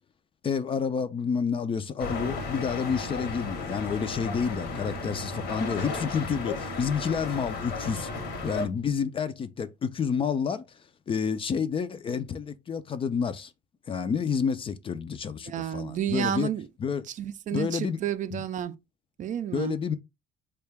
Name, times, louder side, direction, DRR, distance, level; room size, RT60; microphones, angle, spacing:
voice 1, 0.4-8.1 8.4-10.7 11.1-13.5 13.9-16.5 16.8-17.0 17.5-18.0 18.3-18.4 19.5-20.0, left 6 dB, 30° left, 0.4 m, -29 dB
sound 1, 2.0-8.7, left 3 dB, 70° left, 0.9 m, -34 dB
voice 2, 15.5-16.7 17.2-18.7 19.2-19.8, right 10 dB, 50° right, 0.4 m, -31 dB
3.7 x 2.2 x 3.3 m
cardioid pair, 110°, 17 cm